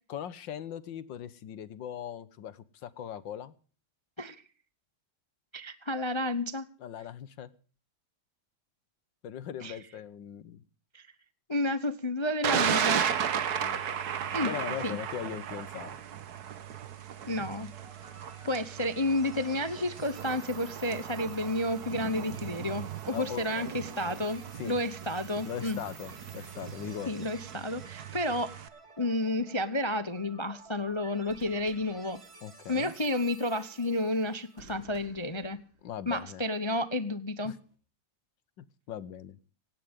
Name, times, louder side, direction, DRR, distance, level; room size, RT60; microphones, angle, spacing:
voice 1, 0.1-3.5 6.8-7.5 9.2-10.6 13.6-13.8 14.5-16.0 23.1-23.7 24.6-24.8 25.4-27.3 32.4-32.9 35.8-36.4 37.5-37.6 38.6-39.4, left 9 dB, 75° left, 17 dB, 1.7 m, -40 dB
voice 2, 5.5-6.7 9.6-9.8 10.9-11.1 11.5-13.0 14.3-14.5 14.8-15.0 17.3-17.7 18.4-25.8 27.1-28.5 29.0-32.2 32.7-35.6 36.1-37.5, left 1 dB, 30° left, 12 dB, 0.5 m, -31 dB
Thunder, 12.4-28.7, right 8 dB, 60° right, 1.6 m, -35 dB
sound 1, 17.7-34.6, right 2 dB, 15° right, 2.8 m, -54 dB
sound 2, 31.3-32.8 34.6-36.2 37.4-37.8, right 1 dB, 80° right, 4.4 m, -57 dB
18.0 x 17.0 x 3.7 m, 0.40 s
omnidirectional pair, 2.1 m